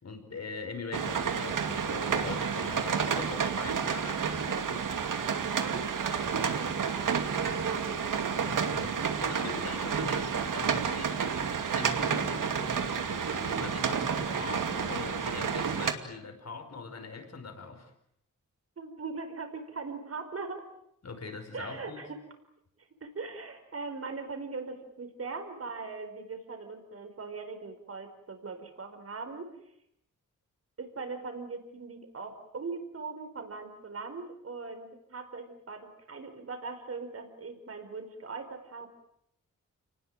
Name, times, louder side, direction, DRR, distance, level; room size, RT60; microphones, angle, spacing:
voice 1, 0.0-4.9 8.4-17.9 21.0-22.1, left 4 dB, 55° left, 6 dB, 5.1 m, -42 dB
sound 1, 0.9-15.9, right 6 dB, 85° right, 2.5 m, -30 dB
voice 2, 5.6-6.9 7.3-8.0 18.8-20.6 21.5-22.2 23.0-29.5 30.8-38.9, right 4 dB, 50° right, 7 dB, 4.7 m, -40 dB
30.0 x 19.5 x 9.1 m, 0.75 s
wide cardioid pair, 155°, 31 cm